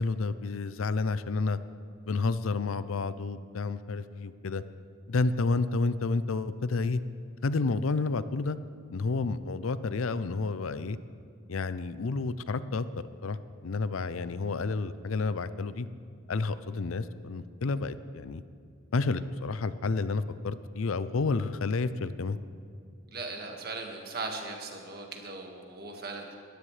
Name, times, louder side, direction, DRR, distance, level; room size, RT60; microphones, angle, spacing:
voice 1, 0.0-1.6 2.1-4.6 5.1-7.0 7.4-8.6 8.9-11.0 11.5-12.8 13.2-13.4 13.6-15.9 16.3-18.4 18.9-22.4, left 3 dB, 80° left, 14 dB, 0.5 m, -30 dB
voice 2, 23.1-26.3, right 3 dB, 45° right, 2 dB, 1.8 m, -38 dB
21.0 x 15.0 x 3.3 m, 2.3 s
head